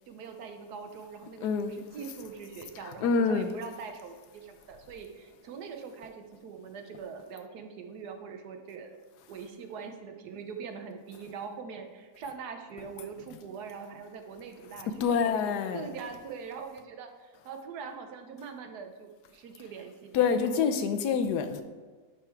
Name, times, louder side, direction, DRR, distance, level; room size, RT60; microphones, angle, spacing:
voice 1, 0.1-9.0 9.3-20.7, right 6 dB, 80° right, 5 dB, 1.3 m, -43 dB
voice 2, 1.4-1.7 2.8-3.5 15.0-15.9 20.1-21.6, left 6 dB, 85° left, 9 dB, 1.2 m, -26 dB
10.5 x 3.6 x 4.4 m, 1.4 s
omnidirectional pair, 1.7 m